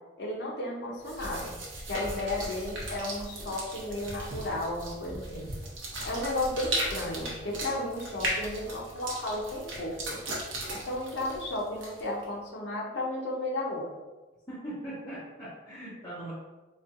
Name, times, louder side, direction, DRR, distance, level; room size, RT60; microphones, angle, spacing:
voice 1, 0.2-1.6 1.9-5.5 6.0-10.2 10.7-13.9, left 1 dB, 65° left, -3 dB, 0.6 m, -33 dB
sound 1, 1.0-12.2, right 1 dB, 85° right, 0.9 m, -37 dB
voice 2, 14.5-16.3, right 1 dB, 20° left, -14 dB, 1.2 m, -40 dB
4.2 x 2.7 x 2.5 m, 1.2 s
head